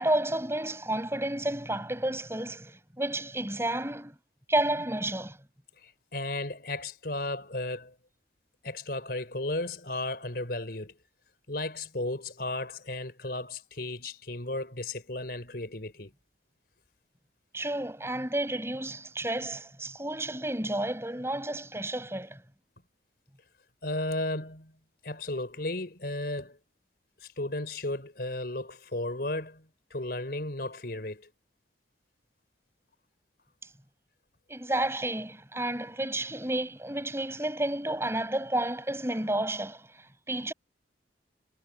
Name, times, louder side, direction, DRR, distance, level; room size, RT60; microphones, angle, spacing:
voice 1, 0.0-4.1 4.5-5.4 17.5-22.4 34.5-40.5, right 1 dB, 15° right, 7.5 m, -31 dB
voice 2, 5.8-7.9 8.6-11.0 11.5-16.1 23.8-24.7 25.0-26.6 27.2-31.3, left 2 dB, 60° left, 4.6 m, -34 dB
head